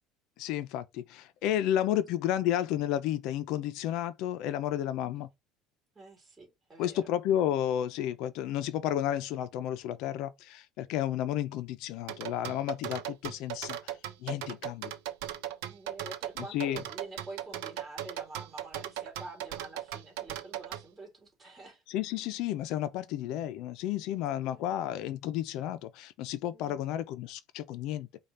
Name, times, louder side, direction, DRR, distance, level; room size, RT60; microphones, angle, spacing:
voice 1, 0.4-5.3 6.8-13.9 14.2-14.9 16.5-16.8 21.9-28.1, left 11 dB, 65° left, 0.5 m, -32 dB
voice 2, 5.9-7.0 15.7-21.8 24.5-24.8 26.5-26.8, right 3 dB, 15° right, 2.9 m, -47 dB
sound 1, 12.1-20.8, right 12 dB, 90° right, 0.7 m, -38 dB
5.0 x 2.4 x 4.2 m
cardioid pair, 145°, 0 cm